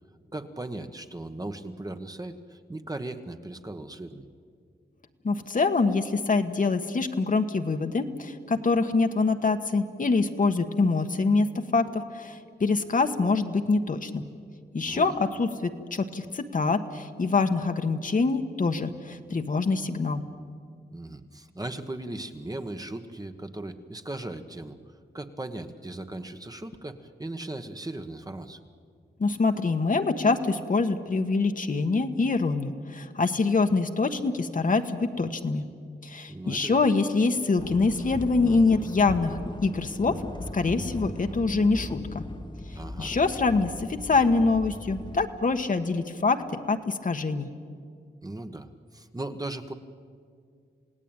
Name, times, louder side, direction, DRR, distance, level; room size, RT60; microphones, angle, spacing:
voice 1, 0.3-4.3 14.9-15.1 20.9-24.8 25.1-28.6 36.3-36.8 42.7-43.2 48.2-49.7, right 2 dB, 20° right, 7 dB, 1.3 m, -38 dB
voice 2, 5.2-14.2 14.7-20.2 29.2-35.6 36.0-40.2 40.5-42.2 43.0-47.5, left 3 dB, 50° left, 7 dB, 1.4 m, -25 dB
sound 1, 37.6-45.3, left 2 dB, 25° left, 1.2 m, -37 dB
28.0 x 17.5 x 9.0 m, 2.2 s
wide cardioid pair, 85°, 18 cm